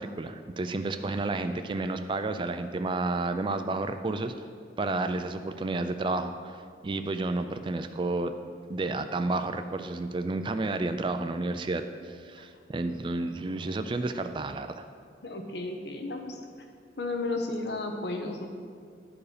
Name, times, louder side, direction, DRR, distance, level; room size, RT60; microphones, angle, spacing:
voice 1, 0.0-4.3 4.8-6.6 6.8-8.3 8.7-14.8, right 2 dB, 25° right, 9 dB, 0.3 m, -31 dB
voice 2, 12.8-13.2 15.2-16.4 17.0-18.5, left 2 dB, 70° left, 4 dB, 0.9 m, -33 dB
12.0 x 4.8 x 4.9 m, 2.2 s
head